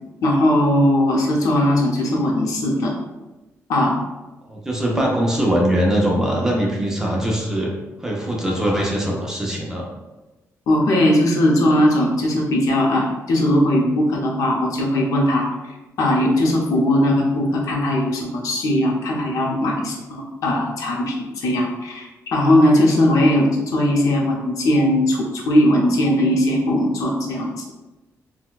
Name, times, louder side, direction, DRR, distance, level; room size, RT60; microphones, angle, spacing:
voice 1, 0.2-2.9 3.7-3.9 10.7-15.4 16.0-27.5, left 1 dB, 85° left, -1 dB, 0.6 m, -19 dB
voice 2, 4.5-7.7 8.0-9.9, equal, 10° right, -2 dB, 0.5 m, -21 dB
4.0 x 2.2 x 2.3 m, 1.1 s
wide cardioid pair, 145°, 6 cm